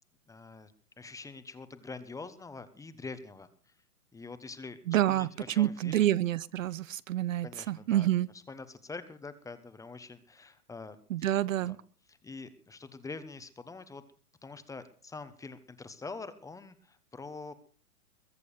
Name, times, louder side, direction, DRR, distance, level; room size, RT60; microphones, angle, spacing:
voice 1, 0.3-0.7 1.0-3.7 4.1-4.8 5.1-6.1 7.4-8.1 8.3-11.3 11.6-11.8 12.1-14.0 14.4-17.5, left 4 dB, 5° left, 12 dB, 1.2 m, -45 dB
voice 2, 4.9-5.3 5.6-8.3 11.1-11.8, right 13 dB, 55° right, 19 dB, 0.8 m, -28 dB
22.0 x 8.3 x 6.8 m, 0.41 s
hypercardioid pair, 130°, 46 cm